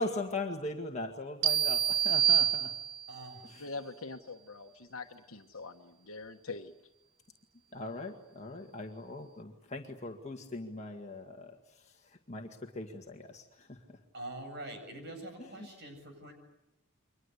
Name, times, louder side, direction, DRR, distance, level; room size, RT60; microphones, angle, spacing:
voice 1, 0.0-2.7 3.4-3.7 7.7-11.6 12.3-13.8 15.4-15.7, left 2 dB, 35° left, 2 dB, 1.9 m, -40 dB
sound 1, 1.4-3.2, right 10 dB, 80° right, 1.0 m, -27 dB
voice 2, 3.1-3.4 14.1-16.3, right 1 dB, 55° right, 6 dB, 7.9 m, -44 dB
voice 3, 3.6-5.7 6.1-6.7, left 3 dB, 75° left, 4 dB, 1.3 m, -43 dB
30.0 x 24.0 x 8.3 m, 0.91 s
head